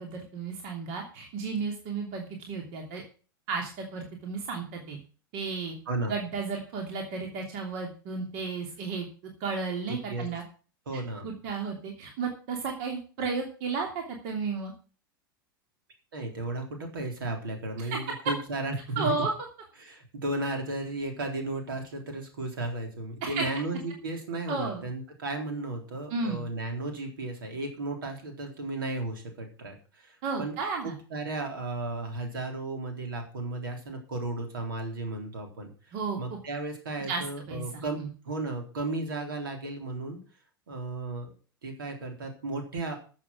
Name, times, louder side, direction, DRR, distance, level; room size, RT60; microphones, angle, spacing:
voice 1, 0.0-3.0 3.5-5.0 5.3-5.8 6.1-10.4 11.2-14.7 17.8-18.0 19.0-19.3 23.2-23.4 24.5-24.8 26.1-26.4 30.2-31.0 35.9-36.4 37.1-37.2 37.5-38.1, right 4 dB, 50° right, 1 dB, 3.0 m, -33 dB
voice 2, 9.9-10.3 10.9-11.3 16.1-19.2 19.8-30.5 30.8-40.2 40.7-41.3 41.6-43.0, right 2 dB, 70° right, 3 dB, 3.8 m, -34 dB
14.0 x 7.5 x 6.1 m, 0.38 s
figure-of-eight pair, 85°, 12 cm